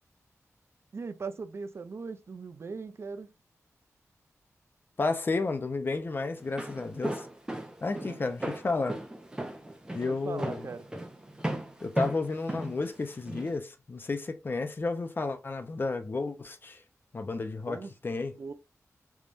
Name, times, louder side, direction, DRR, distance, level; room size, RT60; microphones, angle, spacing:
voice 1, 0.9-3.3 7.9-8.2 10.1-10.8 17.7-17.9 18.4-18.5, right 4 dB, 50° right, 0.4 m, -39 dB
voice 2, 5.0-7.3 7.8-9.0 9.9-10.7 11.8-16.8 17.1-18.3, left 3 dB, 40° left, 0.6 m, -32 dB
Walk footsteps, 6.4-13.5, right 1 dB, 15° right, 0.6 m, -36 dB
3.5 x 3.1 x 2.5 m
wide cardioid pair, 115°, 6 cm